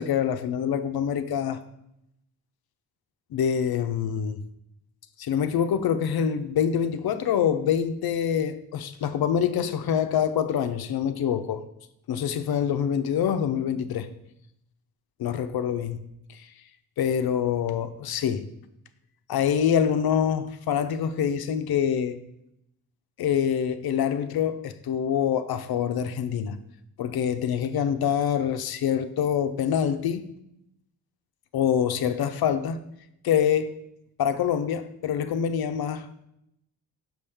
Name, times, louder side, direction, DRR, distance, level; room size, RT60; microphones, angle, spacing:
voice 1, 0.0-1.6 3.3-4.4 5.2-11.6 12.1-14.1 15.2-16.0 16.3-16.4 17.0-18.5 19.3-22.2 23.2-26.6 27.0-30.3 31.5-32.8 33.2-33.7 34.2-36.1, left 8 dB, 60° left, 0.6 m, -25 dB
6.1 x 5.4 x 3.5 m
supercardioid pair, 60°, 42 cm